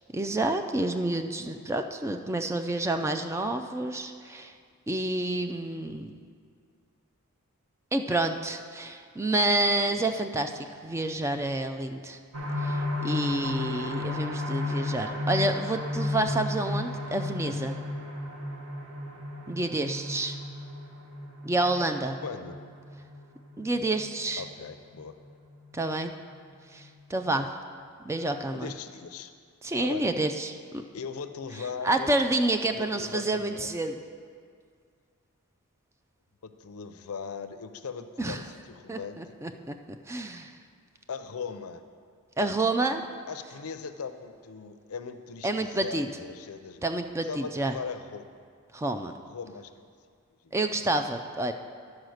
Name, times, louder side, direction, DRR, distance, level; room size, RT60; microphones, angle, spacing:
voice 1, 0.1-4.5 4.9-6.2 7.9-12.2 12.6-17.8 19.5-20.4 21.4-22.2 23.6-24.4 25.7-26.1 26.7-27.5 28.0-28.7 29.6-30.8 31.8-33.9 38.2-38.4 38.9-39.8 40.1-40.5 42.4-43.1 45.4-46.1 46.8-47.7 48.7-49.1 50.5-51.5, right 2 dB, 10° right, 7 dB, 0.3 m, -29 dB
sound 1, 12.3-25.8 26.3-26.4 26.8-26.9, left 2 dB, 80° right, 1.2 m, -34 dB
voice 2, 22.2-22.6 24.4-25.1 28.5-29.3 29.8-30.1 30.9-32.1 32.7-33.8 36.4-39.7 41.1-41.8 43.3-46.8 47.2-48.4 49.0-49.8 50.4-50.7, left 5 dB, 80° left, 9 dB, 0.5 m, -39 dB
10.5 x 4.9 x 6.4 m, 2.1 s
head